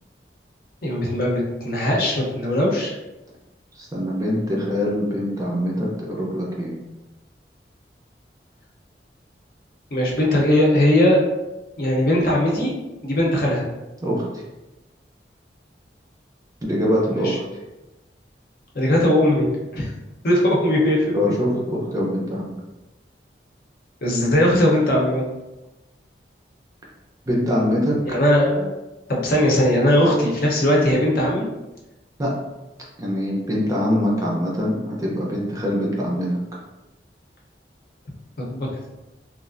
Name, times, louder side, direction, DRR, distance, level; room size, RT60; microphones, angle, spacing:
voice 1, 0.8-2.9 9.9-11.2 11.8-12.7 13.0-13.7 17.1-17.4 18.7-19.9 20.2-21.3 24.0-25.2 28.1-28.7 29.1-31.5 38.4-38.7, left 1 dB, 55° left, -3 dB, 0.7 m, -19 dB
voice 2, 3.8-6.7 14.0-14.4 16.6-17.3 21.1-22.6 27.3-28.2 32.2-32.3 33.0-36.3, equal, 20° right, -3 dB, 0.5 m, -23 dB
3.1 x 2.4 x 2.5 m, 1.0 s
head